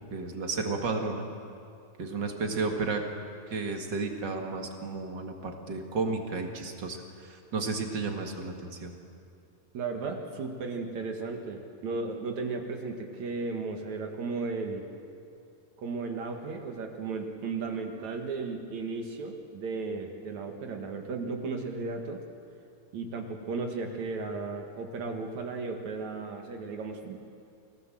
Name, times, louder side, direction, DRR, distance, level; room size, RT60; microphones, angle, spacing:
voice 1, 0.1-1.2 2.0-3.0 3.5-8.9, right 4 dB, 40° right, 3 dB, 2.0 m, -32 dB
voice 2, 9.7-14.9 15.8-22.2 22.9-27.2, right 4 dB, 55° right, 4 dB, 2.8 m, -35 dB
28.5 x 17.5 x 7.7 m, 2.5 s
omnidirectional pair, 4.1 m